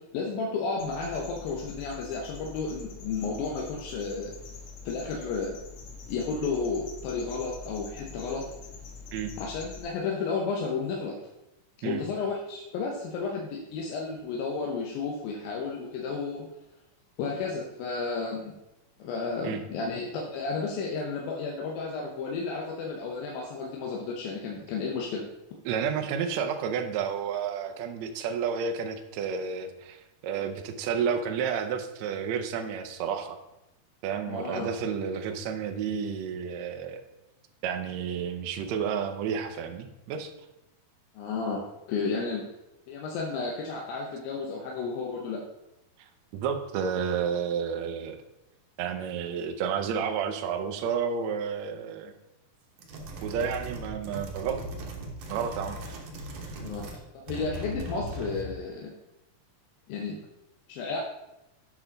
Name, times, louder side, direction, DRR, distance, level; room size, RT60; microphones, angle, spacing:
voice 1, 0.1-4.3 4.9-5.6 6.1-8.5 9.4-11.2 11.8-16.4 17.2-18.5 19.0-25.3 34.3-34.7 41.2-41.6 41.9-42.4 42.9-45.4 56.6-56.8 57.1-58.9 59.9-60.2 60.7-61.0, left 4 dB, 85° left, -1 dB, 2.7 m, -32 dB
sound 1, 0.8-9.8, left 4 dB, 55° left, 2.2 m, -44 dB
voice 2, 25.6-33.4 34.0-37.0 37.6-40.3 46.3-48.2 48.8-52.1 53.2-54.6 55.3-55.8, right 7 dB, 85° right, 6 dB, 1.5 m, -31 dB
sound 2, 52.8-57.0 57.3-58.6, right 1 dB, 65° right, 1.8 m, -38 dB
8.6 x 5.9 x 3.9 m, 0.91 s
omnidirectional pair, 4.1 m